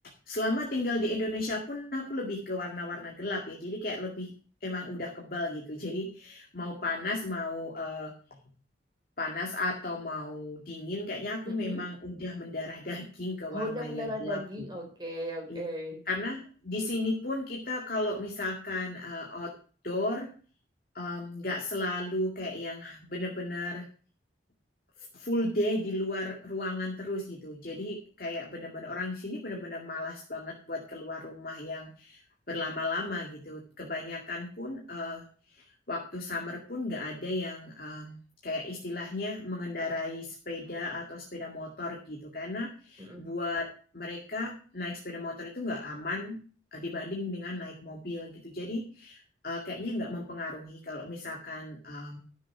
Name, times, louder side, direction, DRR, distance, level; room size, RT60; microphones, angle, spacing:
voice 1, 0.3-4.3 4.6-8.1 9.2-14.7 15.5-15.6 16.1-19.6 19.8-20.3 20.9-23.9 25.0-32.2 32.5-35.2 35.5-43.7 43.9-46.4 46.7-52.2, left 2 dB, 50° left, -1 dB, 2.2 m, -34 dB
voice 2, 11.4-11.8 13.5-16.0 43.0-43.2, equal, 25° right, 1 dB, 3.9 m, -36 dB
12.5 x 7.3 x 5.9 m, 0.41 s
head